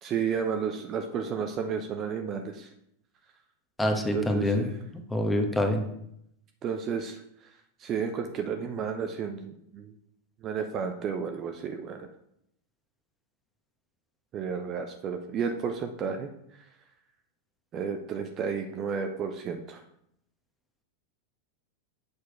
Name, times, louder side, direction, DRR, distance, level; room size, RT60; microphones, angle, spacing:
voice 1, 0.0-2.7 3.9-4.7 6.6-7.2 7.8-9.9 10.4-12.1 14.3-16.3 17.7-19.8, right 6 dB, 30° right, 5 dB, 0.8 m, -32 dB
voice 2, 3.8-4.7 5.1-5.8, left 1 dB, 5° left, 4 dB, 1.4 m, -25 dB
8.2 x 6.5 x 4.7 m, 0.76 s
figure-of-eight pair, 90°, 0 cm